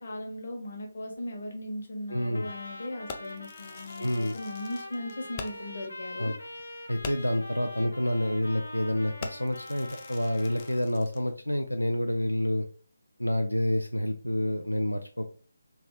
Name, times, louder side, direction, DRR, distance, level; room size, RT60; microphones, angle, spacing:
voice 1, 0.0-6.4 7.8-7.9, left 1 dB, 45° left, 2 dB, 1.2 m, -38 dB
voice 2, 2.1-2.5 4.0-4.3 6.2-6.3 6.9-12.7 13.2-15.4, left 1 dB, 90° left, 5 dB, 0.4 m, -28 dB
Trumpet, 2.3-10.9, left 1 dB, 70° left, 0.9 m, -43 dB
Fireworks, 3.1-5.8 6.2-6.3 6.6-6.7 7.0-7.5 8.1-8.3 8.6-8.8 9.2-11.3, left 5 dB, 25° left, 0.4 m, -44 dB
3.4 x 2.9 x 3.1 m, 0.41 s
figure-of-eight pair, 150°, 0 cm